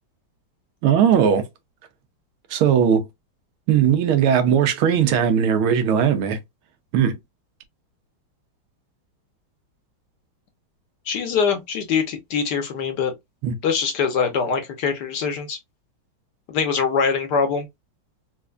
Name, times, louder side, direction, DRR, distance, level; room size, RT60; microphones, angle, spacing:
voice 1, 0.8-1.4 2.5-3.0 3.7-6.4 6.9-7.2 13.4-13.6, right 8 dB, 85° right, 1.6 m, -18 dB
voice 2, 11.1-13.1 13.6-15.6 16.5-17.7, left 6 dB, 65° left, 1.2 m, -23 dB
4.5 x 2.5 x 2.4 m
omnidirectional pair, 2.3 m